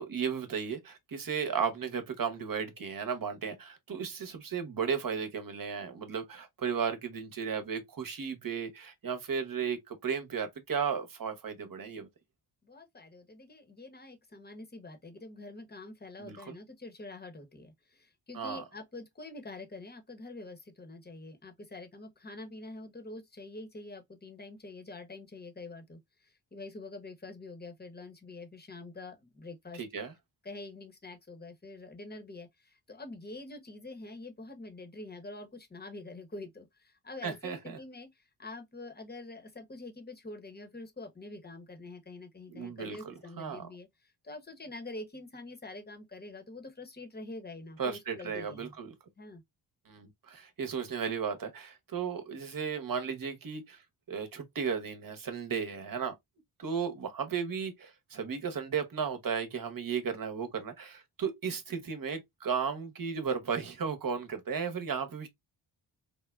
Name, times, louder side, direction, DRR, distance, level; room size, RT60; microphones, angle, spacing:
voice 1, 0.0-12.1 16.2-16.5 18.3-18.6 29.7-30.1 37.2-37.8 42.5-43.7 47.8-48.9 49.9-53.8 54.1-56.1 56.6-65.3, right 6 dB, 45° right, 1.0 m, -35 dB
voice 2, 12.6-29.8 30.4-48.7 49.2-49.4, left 2 dB, 20° left, 1.0 m, -46 dB
3.5 x 2.1 x 2.3 m
supercardioid pair, 45°, 47 cm